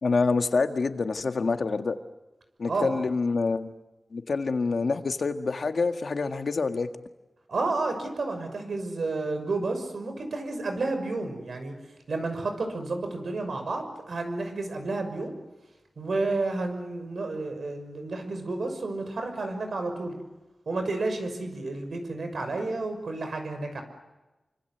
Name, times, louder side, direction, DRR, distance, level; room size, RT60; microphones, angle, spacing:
voice 1, 0.0-2.0 2.6-3.7 4.1-6.9, left 4 dB, 75° left, 7 dB, 1.7 m, -26 dB
voice 2, 2.7-3.0 7.5-11.7 12.1-15.3 16.0-20.2 20.7-23.8, right 3 dB, 85° right, 6 dB, 6.1 m, -31 dB
28.0 x 26.0 x 8.1 m, 1.1 s
wide cardioid pair, 90°, 0 cm